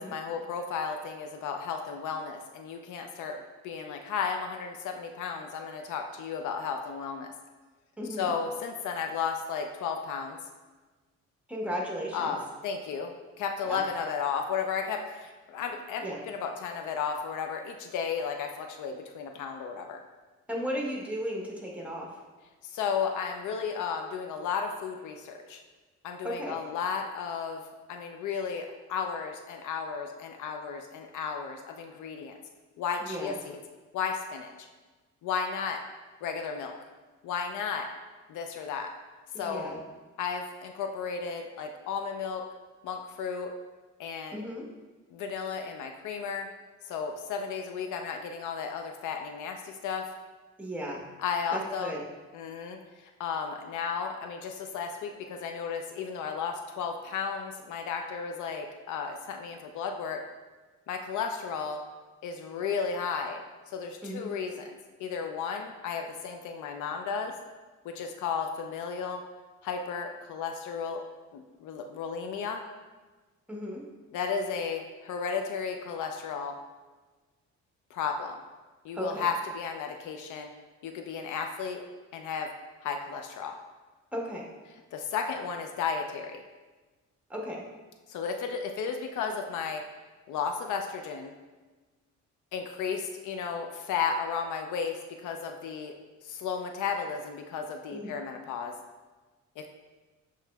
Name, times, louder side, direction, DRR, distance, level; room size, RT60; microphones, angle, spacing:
voice 1, 0.0-3.4 3.6-7.3 8.1-10.4 12.1-20.0 22.6-25.6 26.0-27.6 27.9-32.4 32.8-33.6 33.9-34.7 35.2-35.8 36.2-36.7 37.2-37.9 38.3-38.9 39.4-39.8 40.2-42.4 42.8-43.5 44.0-44.4 45.1-46.5 46.9-50.1 51.2-51.9 52.3-60.2 60.9-61.8 62.2-63.4 63.7-67.4 67.8-69.2 69.6-71.0 71.3-72.6 74.1-76.6 77.9-78.4 78.8-80.5 80.8-81.8 82.1-82.5 82.8-83.5 84.9-86.4 88.1-89.8 90.3-91.3 92.5-95.9 96.2-98.7 99.6-99.7, left 6 dB, 80° left, 4 dB, 0.5 m, -34 dB
voice 2, 8.0-8.3 11.5-12.3 13.7-13.8 16.0-16.2 20.5-22.1 26.2-26.6 33.0-33.4 39.3-39.8 44.3-44.6 50.6-51.0 51.5-52.0 64.0-64.3 73.5-73.8 78.9-79.3 84.1-84.5 87.3-87.6 97.9-98.1, equal, 5° right, -2 dB, 1.1 m, -35 dB
7.3 x 3.1 x 2.3 m, 1.3 s
cardioid pair, 90°, 30 cm